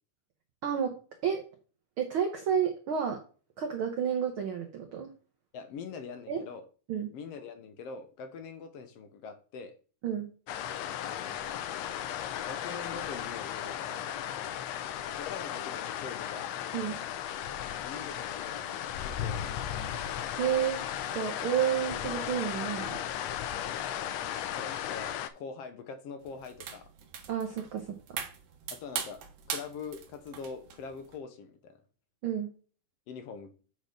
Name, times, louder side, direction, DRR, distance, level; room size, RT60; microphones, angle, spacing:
voice 1, 0.6-1.0 1.2-1.4 2.0-3.2 3.6-5.1 6.3-6.4 6.9-7.1 10.0-10.3 16.7-17.0 20.3-20.9 21.1-23.0 27.3-28.2 32.2-32.5, right 8 dB, 85° right, 4 dB, 1.1 m, -31 dB
voice 2, 5.5-6.6 7.1-9.7 11.2-11.6 12.4-14.1 15.1-16.6 17.8-19.6 24.5-26.9 28.7-29.2 29.5-31.8 33.1-33.5, left 5 dB, 70° left, 8 dB, 1.5 m, -43 dB
sound 1, 10.5-25.3, left 10 dB, 90° left, 1.4 m, -36 dB
sound 2, 26.2-31.2, right 8 dB, 60° right, 1.7 m, -41 dB
7.9 x 4.2 x 5.0 m, 0.38 s
omnidirectional pair, 3.7 m